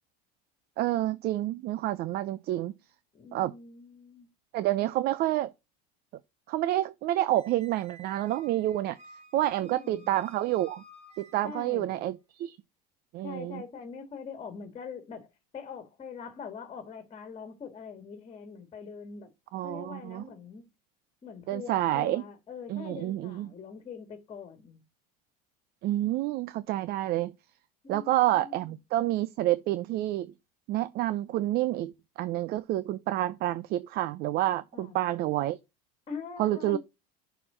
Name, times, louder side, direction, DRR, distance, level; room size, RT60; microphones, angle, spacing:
voice 1, 0.8-2.7 3.3-3.5 4.5-5.5 6.5-9.0 9.3-10.8 11.2-12.6 13.1-13.6 19.5-20.2 21.5-22.2 22.7-23.5 25.8-27.3 27.9-30.3 30.7-35.6 36.4-36.8, right 14 dB, 50° right, 0.6 m, -28 dB
voice 2, 3.1-4.3 9.6-10.1 11.4-12.0 13.2-15.3 15.5-19.3 19.6-20.6 21.2-24.8 27.8-28.8 34.7-35.0 36.1-36.8, left 6 dB, 25° left, 2.1 m, -43 dB
Squeak, 7.4-11.8, equal, 30° right, 2.9 m, -55 dB
6.6 x 4.6 x 5.6 m
supercardioid pair, 120°, 20 cm